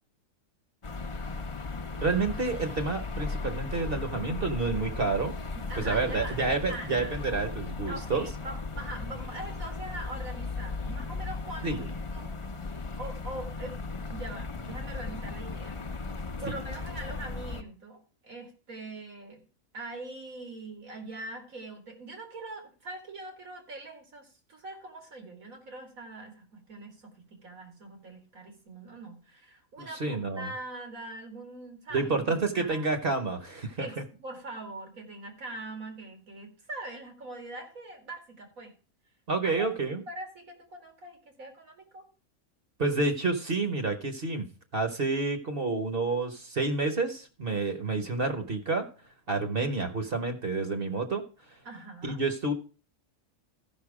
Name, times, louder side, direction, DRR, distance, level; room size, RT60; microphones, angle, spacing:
sound 1, 0.8-17.6, left 3 dB, 30° left, 0.6 m, -36 dB
voice 1, 2.0-5.3 5.8-8.2 11.6-11.9 29.8-30.5 31.9-34.0 39.3-40.0 42.8-44.4 44.7-48.8 49.3-51.2 52.0-52.5, right 3 dB, 45° right, 7 dB, 1.2 m, -29 dB
voice 2, 5.5-6.4 6.7-7.1 7.9-11.8 12.1-12.4 13.0-13.8 14.1-15.8 16.4-19.4 19.7-32.8 33.8-38.7 39.4-39.5 40.1-42.1 51.6-52.2, right 2 dB, 85° right, 4 dB, 2.7 m, -42 dB
13.5 x 5.6 x 4.8 m, 0.36 s
omnidirectional pair, 1.4 m